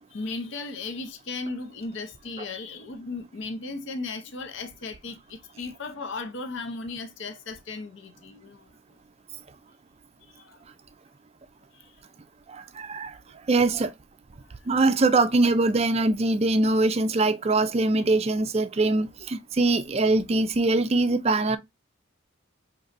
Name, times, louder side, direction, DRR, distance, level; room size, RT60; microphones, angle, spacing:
voice 1, 0.1-8.7 10.3-10.6 11.7-12.0, left 3 dB, 60° left, 0.6 m, -36 dB
voice 2, 12.5-13.1 13.5-13.9 14.7-21.6, right 2 dB, 30° right, 0.4 m, -22 dB
5.3 x 3.0 x 2.5 m
head